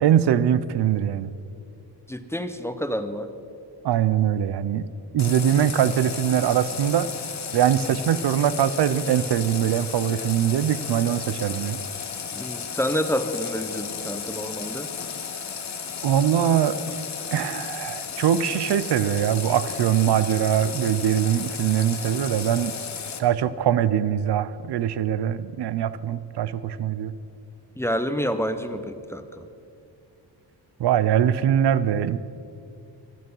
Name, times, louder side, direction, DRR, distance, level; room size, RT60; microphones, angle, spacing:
voice 1, 0.0-1.3 3.8-4.9 5.1-7.1 7.5-11.8 16.0-16.8 17.3-22.8 23.2-27.2 30.8-32.2, right 10 dB, 75° right, 15 dB, 0.7 m, -22 dB
voice 2, 2.1-3.3 12.3-14.9 27.8-29.5, equal, 5° left, 9 dB, 0.7 m, -28 dB
Water tap faucet, 5.2-23.2, left 6 dB, 40° left, 1.1 m, -34 dB
25.0 x 9.1 x 5.5 m, 2.5 s
wide cardioid pair, 135°, 41 cm